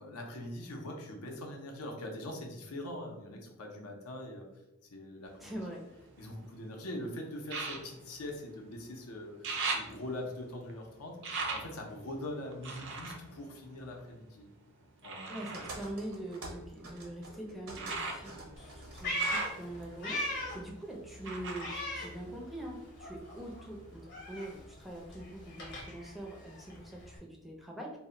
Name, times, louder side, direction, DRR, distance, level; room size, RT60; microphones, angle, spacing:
voice 1, 0.0-4.5 4.9-5.6 6.2-14.5 15.0-15.7, left 1 dB, 80° left, 1 dB, 0.6 m, -42 dB
sound 1, 5.3-6.6 7.4-9.0 9.2-14.4 15.0-22.9 23.2-24.0 24.5-24.6, right 3 dB, 55° right, 0.4 m, -41 dB
voice 2, 5.4-5.9 15.3-28.0, right 1 dB, ahead, -2 dB, 0.4 m, -44 dB
sound 2, 15.5-20.7, right 2 dB, 75° right, 0.8 m, -48 dB
Meow, 18.6-20.7 21.0-22.7 23.0-27.2, equal, 50° left, 0.8 m, -39 dB
2.1 x 2.0 x 3.7 m, 0.98 s
head